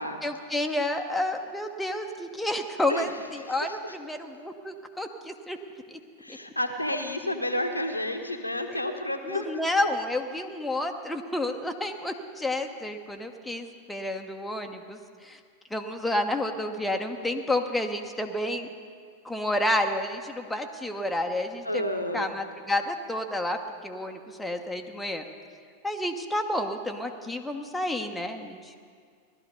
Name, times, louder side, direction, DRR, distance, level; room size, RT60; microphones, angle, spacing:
voice 1, 0.2-5.6 5.9-6.0 6.3-6.4 8.7-8.8 9.2-15.4 15.7-18.7 19.2-21.8 22.1-25.2 25.8-28.7, left 1 dB, 5° left, 3 dB, 1.0 m, -30 dB
voice 2, 6.2-9.6 21.6-22.3, left 1 dB, 85° left, 4 dB, 1.1 m, -30 dB
17.0 x 12.5 x 5.2 m, 2.1 s
figure-of-eight pair, 90°, 0 cm